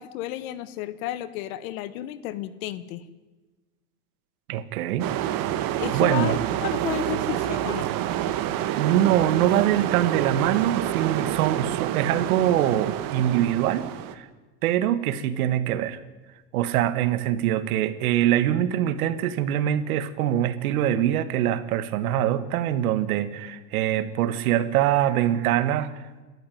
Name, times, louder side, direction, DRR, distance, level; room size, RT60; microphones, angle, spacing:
voice 1, 0.0-3.0 5.8-7.9 8.2-8.6, left 13 dB, 75° left, 15 dB, 1.7 m, -33 dB
voice 2, 4.5-5.1 5.9-6.4 8.8-13.9 14.1-14.3 14.6-16.0 16.5-26.2, right 11 dB, 90° right, 13 dB, 1.8 m, -23 dB
sound 1, 5.0-14.1, right 12 dB, 55° right, 1.9 m, -28 dB
30.0 x 13.0 x 9.4 m, 1.2 s
supercardioid pair, 135°, 42 cm